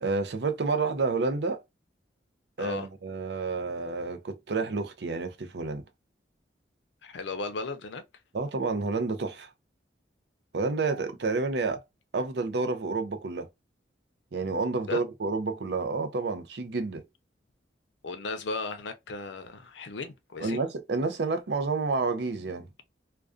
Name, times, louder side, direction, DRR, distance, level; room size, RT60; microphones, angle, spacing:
voice 1, 0.0-1.6 2.6-5.8 8.3-9.5 10.5-11.8 12.1-13.5 14.3-17.0 20.4-22.7, right 3 dB, 65° right, 0.5 m, -29 dB
voice 2, 7.0-8.0 14.9-15.0 18.0-20.6, left 3 dB, 80° left, 0.5 m, -36 dB
2.4 x 2.3 x 2.3 m
head